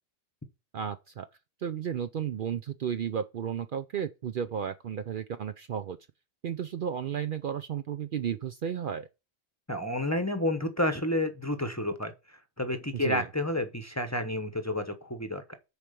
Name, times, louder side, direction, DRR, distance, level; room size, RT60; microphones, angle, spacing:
voice 1, 0.7-1.3 1.6-6.0 6.4-9.1 13.0-13.2, right 8 dB, 60° right, 0.6 m, -33 dB
voice 2, 9.7-15.5, left 1 dB, 15° left, 0.8 m, -30 dB
6.8 x 4.6 x 6.7 m
omnidirectional pair, 1.1 m